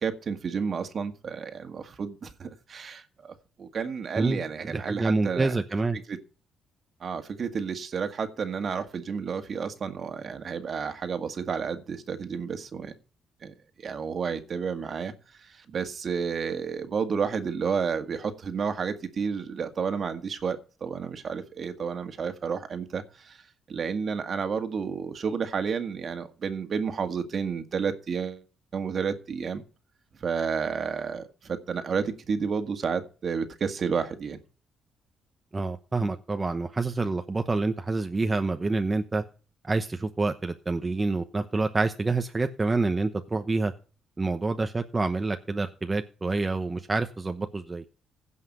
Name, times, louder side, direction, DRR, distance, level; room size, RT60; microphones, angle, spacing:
voice 1, 0.0-5.6 5.9-6.2 7.0-12.9 13.4-15.1 15.4-23.4 23.7-28.4 28.7-29.6 30.2-34.4, right 6 dB, 50° right, 1.8 m, -31 dB
voice 2, 4.6-6.0 35.5-39.2 39.6-43.7 44.2-47.8, right 3 dB, 25° right, 0.9 m, -27 dB
16.0 x 5.7 x 5.5 m
cardioid pair, 90°, 0 cm